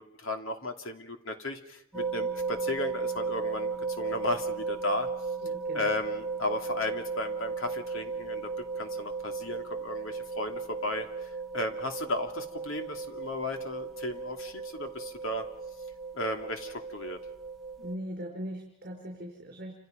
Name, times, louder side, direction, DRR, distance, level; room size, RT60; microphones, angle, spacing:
voice 1, 0.0-5.1 5.7-15.5 16.1-17.2, left 1 dB, 70° left, 5 dB, 2.7 m, -35 dB
sound 1, 1.9-17.9, right 4 dB, ahead, 2.7 m, -36 dB
voice 2, 5.4-6.0 17.8-19.7, equal, 45° right, 0 dB, 4.7 m, -40 dB
28.5 x 27.0 x 5.2 m, 0.79 s
head